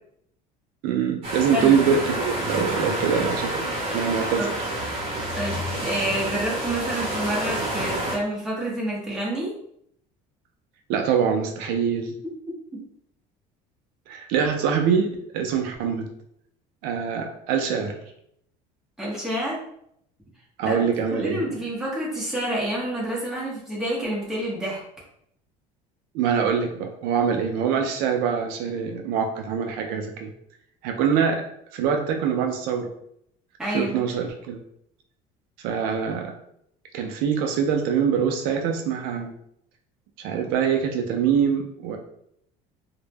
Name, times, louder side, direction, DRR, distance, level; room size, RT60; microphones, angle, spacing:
voice 1, 0.8-4.7 10.9-12.2 14.1-15.1 15.3-16.1 16.8-18.0 20.6-21.5 26.1-30.3 30.8-31.4 31.7-32.9 33.7-34.6 35.6-36.3 36.9-39.3 40.2-42.0, right 7 dB, 70° right, 4 dB, 0.4 m, -24 dB
sound 1, 1.2-8.2, right 1 dB, 35° right, 0.8 m, -28 dB
voice 2, 5.4-9.5 19.0-19.6 20.6-20.8 21.1-24.8 33.6-34.1, right 1 dB, 5° right, -6 dB, 0.7 m, -28 dB
2.1 x 2.1 x 3.3 m, 0.72 s
cardioid pair, 155°, 16 cm